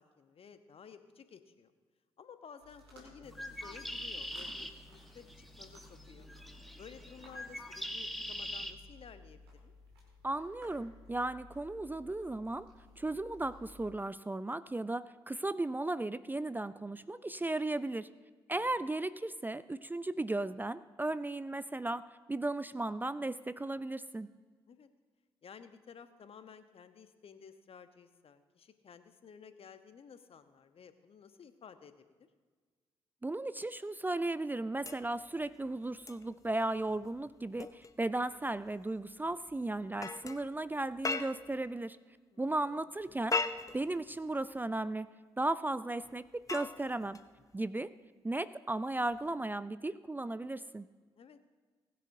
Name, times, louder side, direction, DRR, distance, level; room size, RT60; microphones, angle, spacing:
voice 1, 0.0-1.7 2.2-6.3 6.8-9.7 18.5-18.8 24.7-24.9 25.4-32.3 42.3-42.8 51.2-51.4, left 6 dB, 50° left, 10 dB, 1.0 m, -54 dB
sound 1, 2.6-14.0, left 2 dB, 90° right, 2.3 m, -57 dB
Bird, 3.2-8.7, equal, ahead, 1.2 m, -43 dB
voice 2, 10.2-12.7 13.0-18.1 18.5-24.3 33.2-42.0 42.4-43.4 43.7-45.1 45.4-47.2 47.5-47.9 48.2-50.8, right 2 dB, 15° right, 15 dB, 0.4 m, -35 dB
sound 2, 34.8-41.7 43.0-44.6 46.0-47.6 49.1-49.3, left 4 dB, 25° left, 0.8 m, -41 dB
19.5 x 10.0 x 2.7 m, 1.4 s
hypercardioid pair, 40°, 13 cm